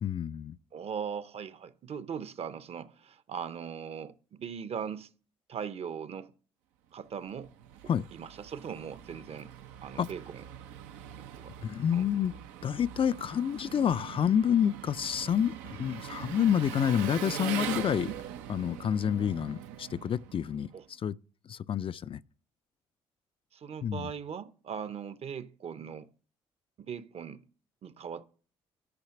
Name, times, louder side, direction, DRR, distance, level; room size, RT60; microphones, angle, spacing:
voice 1, 0.0-0.6 7.9-8.0 10.0-10.1 11.6-12.3 12.6-18.1 18.5-21.2 21.5-22.2 23.8-24.1, left 9 dB, 45° left, 0.4 m, -28 dB
voice 2, 0.7-5.1 5.5-6.3 6.9-7.5 8.1-9.5 9.8-10.5 11.2-11.5 11.9-12.1 20.7-20.8 23.5-26.1 26.8-27.5 27.8-28.2, right 7 dB, 50° right, 0.8 m, -39 dB
Engine, 7.2-20.8, right 10 dB, 85° right, 0.7 m, -42 dB
12.0 x 5.6 x 5.8 m
hypercardioid pair, 55°, 13 cm